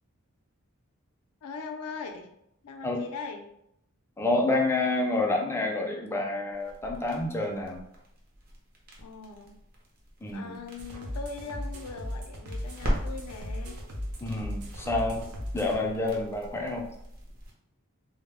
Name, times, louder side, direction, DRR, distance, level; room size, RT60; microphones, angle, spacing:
voice 1, 1.4-2.3 2.6-3.5 9.0-9.5 10.3-13.8, left 4 dB, 90° left, 4 dB, 0.4 m, -40 dB
voice 2, 4.2-7.8 10.2-10.6 14.2-15.2 15.5-16.9, left 2 dB, 10° left, 0 dB, 0.3 m, -28 dB
sound 1, 6.5-17.5, equal, 45° right, 0.6 m, -40 dB
sound 2, 10.8-15.8, equal, 90° right, 0.6 m, -37 dB
2.1 x 2.0 x 3.3 m, 0.78 s
head